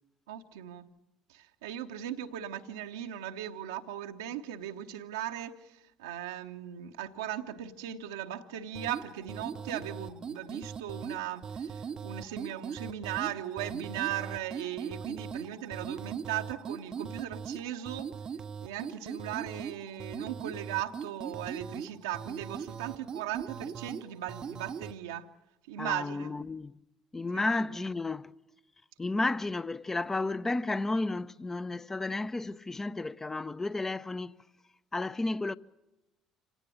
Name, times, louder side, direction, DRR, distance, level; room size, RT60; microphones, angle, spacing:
voice 1, 0.3-0.9 1.3-18.1 18.6-25.3 25.7-26.3 27.3-27.5, right 11 dB, 70° right, 1.0 m, -38 dB
sound 1, 8.7-25.0, right 6 dB, 35° right, 0.7 m, -40 dB
voice 2, 25.8-26.7 27.1-28.3 29.0-34.3 34.9-35.5, left 2 dB, 20° left, 0.8 m, -32 dB
26.5 x 17.5 x 8.6 m
figure-of-eight pair, 55°, 2 cm